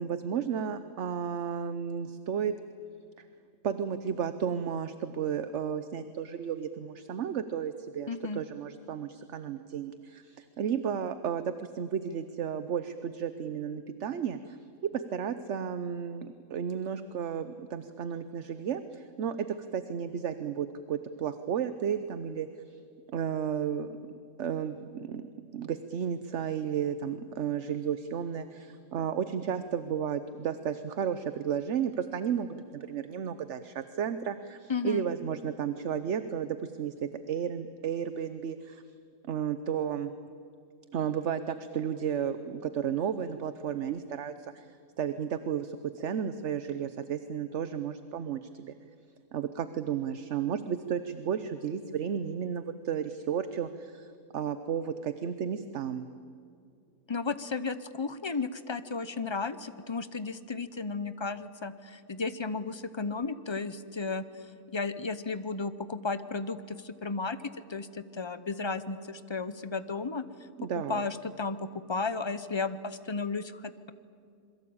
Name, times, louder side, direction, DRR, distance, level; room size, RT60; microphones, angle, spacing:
voice 1, 0.0-2.5 3.2-3.3 3.6-14.6 14.8-19.5 19.7-22.8 23.1-23.9 24.4-38.8 39.3-40.1 40.9-44.7 45.0-48.7 49.3-54.1 54.3-56.1 70.6-71.0, right 8 dB, 55° right, 11 dB, 1.0 m, -33 dB
voice 2, 8.1-8.4 34.7-35.0 57.1-64.2 64.7-67.4 67.7-70.2 70.7-71.6 71.9-73.9, left 4 dB, 25° left, 13 dB, 0.6 m, -34 dB
27.0 x 22.5 x 8.8 m, 2.4 s
omnidirectional pair, 1.6 m